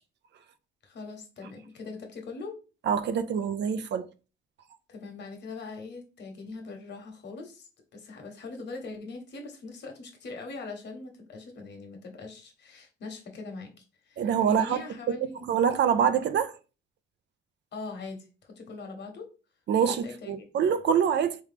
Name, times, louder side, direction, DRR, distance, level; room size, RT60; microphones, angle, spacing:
voice 1, 0.8-2.6 4.9-15.4 17.7-19.3 19.8-20.5, left 3 dB, 60° left, 1.4 m, -42 dB
voice 2, 2.9-4.1 14.2-15.2 15.5-16.5 19.7-21.4, right 7 dB, 60° right, 0.5 m, -25 dB
3.6 x 3.1 x 3.6 m
cardioid pair, 90°, 20 cm